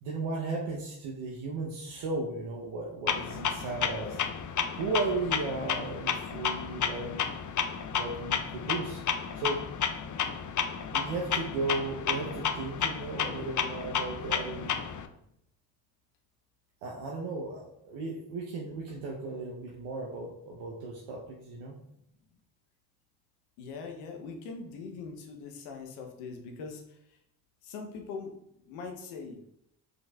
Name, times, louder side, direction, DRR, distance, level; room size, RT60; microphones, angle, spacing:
voice 1, 0.0-4.2 4.7-7.2 7.9-9.0 9.3-9.6 10.9-14.8 16.8-21.8, right 3 dB, 75° right, -3 dB, 0.9 m, -35 dB
Clock, 3.1-15.1, left 7 dB, 40° left, 0.5 m, -32 dB
voice 2, 23.6-27.0 27.6-29.4, left 4 dB, 85° left, 3 dB, 0.9 m, -42 dB
5.0 x 3.8 x 2.3 m, 0.76 s
hypercardioid pair, 45°, 49 cm